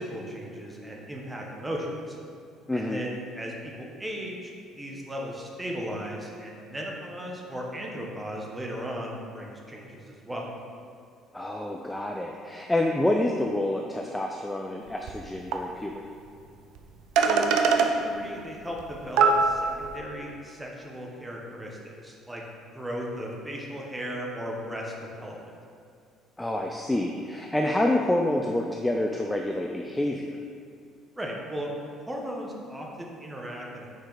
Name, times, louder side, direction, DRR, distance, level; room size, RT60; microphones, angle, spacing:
voice 1, 0.0-2.2 2.7-4.5 4.8-10.5 17.2-22.4 22.7-25.6 31.2-31.7 32.1-33.9, equal, 10° right, -1 dB, 0.9 m, -36 dB
voice 2, 2.7-3.0 11.3-16.0 26.4-30.4, left 1 dB, 5° left, 1 dB, 0.3 m, -27 dB
sound 1, 15.1-15.2 15.5-15.6 16.8-16.9 17.2-17.9 18.8-18.9 19.2-19.9, right 5 dB, 70° right, 0.5 m, -21 dB
6.5 x 4.8 x 4.0 m, 2.4 s
cardioid pair, 145°, 0 cm